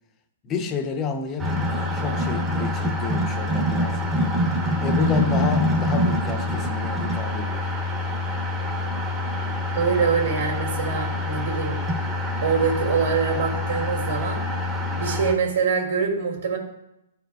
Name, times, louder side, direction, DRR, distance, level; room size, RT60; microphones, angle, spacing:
voice 1, 0.4-4.1 4.8-7.7, left 5 dB, 20° left, 0.6 m, -30 dB
sound 1, 1.4-15.3, left 1 dB, 10° right, 0.9 m, -25 dB
voice 2, 5.0-5.3 9.7-11.8 12.4-14.4 14.9-16.6, right 5 dB, 65° right, 2.3 m, -24 dB
14.5 x 4.8 x 2.3 m
hypercardioid pair, 160°, 0 cm